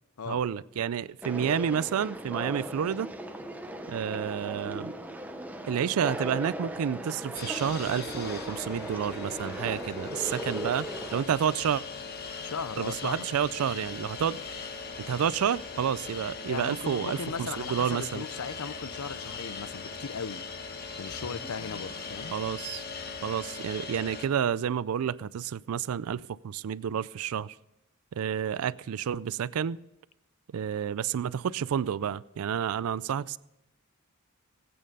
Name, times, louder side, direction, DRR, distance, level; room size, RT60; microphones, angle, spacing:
voice 1, 0.3-3.1 3.9-4.9 5.7-11.8 12.8-14.4 15.1-18.2 22.3-22.8 23.2-27.5 28.1-29.8 30.5-33.4, right 8 dB, 80° right, 0.4 m, -30 dB
Conversation, 1.2-11.2, right 1 dB, 5° right, 0.7 m, -38 dB
sound 1, 7.3-24.3, left 5 dB, 45° left, 1.0 m, -40 dB
voice 2, 12.4-13.2 16.5-20.4 20.9-22.3, left 5 dB, 90° left, 0.6 m, -37 dB
sound 2, 14.5-22.6, left 1 dB, 25° left, 1.9 m, -55 dB
19.0 x 8.7 x 5.3 m
head